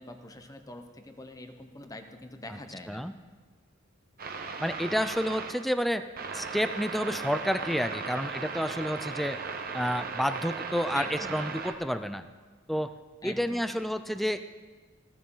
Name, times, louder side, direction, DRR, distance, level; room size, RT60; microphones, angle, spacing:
voice 1, 0.0-3.0 10.9-11.4 13.2-13.6, left 2 dB, 15° left, 7 dB, 0.9 m, -43 dB
sound 1, 4.2-5.5 6.2-11.7, right 5 dB, 45° right, 1.1 m, -37 dB
voice 2, 4.6-6.0 6.3-9.4 9.7-12.3 12.7-12.9 13.2-14.5, equal, ahead, 10 dB, 0.5 m, -30 dB
16.0 x 14.0 x 3.9 m, 1.4 s
head